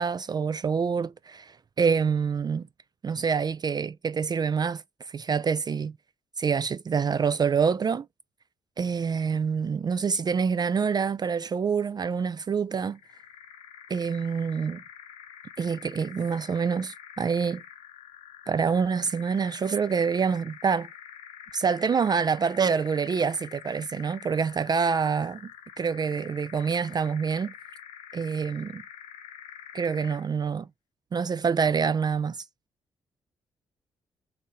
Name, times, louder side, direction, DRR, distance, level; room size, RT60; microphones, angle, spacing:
voice 1, 0.0-2.7 3.0-5.9 6.4-8.1 8.8-13.0 13.9-14.8 15.6-17.6 18.5-20.9 21.5-25.5 25.8-27.5 28.1-28.8 29.7-30.7 31.1-32.4, right 6 dB, 35° right, 0.3 m, -26 dB
sound 1, 12.9-30.3, left 9 dB, 80° left, 0.8 m, -46 dB
3.9 x 2.6 x 2.6 m
hypercardioid pair, 45°, 11 cm